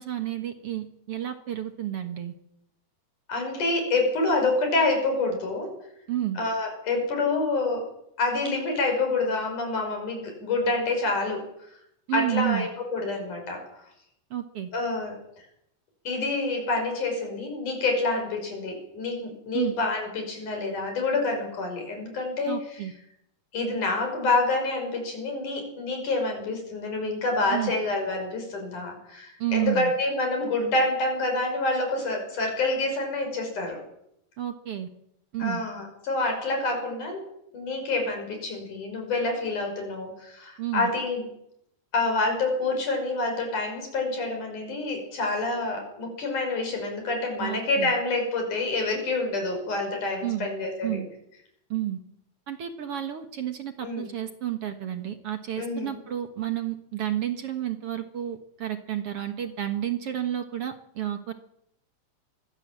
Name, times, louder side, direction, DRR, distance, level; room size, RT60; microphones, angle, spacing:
voice 1, 0.0-2.3 6.1-6.4 12.1-12.7 14.3-14.7 19.5-19.7 22.5-22.9 27.5-27.7 29.4-29.9 34.4-34.9 35.3-35.6 40.6-40.9 47.4-47.9 50.2-50.5 50.8-51.1 51.7-52.0 52.5-61.3, right 12 dB, 55° right, 7 dB, 2.1 m, -31 dB
voice 2, 3.3-5.7 6.4-7.9 8.2-11.4 12.1-13.6 14.7-15.2 16.1-22.6 23.5-33.8 35.4-37.2 37.5-41.2 41.9-51.0 53.8-54.1 55.6-56.0, left 2 dB, 85° left, 3 dB, 7.3 m, -27 dB
23.5 x 16.5 x 7.6 m, 0.77 s
omnidirectional pair, 3.5 m